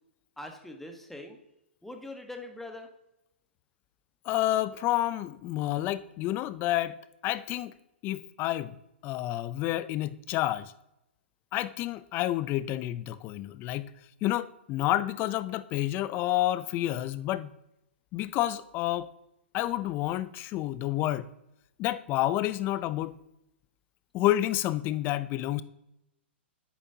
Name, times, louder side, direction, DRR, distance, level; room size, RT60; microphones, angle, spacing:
voice 1, 0.4-1.4 1.8-2.9, left 2 dB, 5° left, 4 dB, 1.1 m, -42 dB
voice 2, 4.2-7.0 7.2-7.7 8.0-8.8 9.0-10.7 11.5-13.9 14.2-17.5 18.1-19.1 19.5-21.3 21.8-23.2 24.1-25.6, left 14 dB, 35° left, 16 dB, 0.4 m, -29 dB
10.0 x 8.5 x 2.8 m, 0.85 s
hypercardioid pair, 115°, 6 cm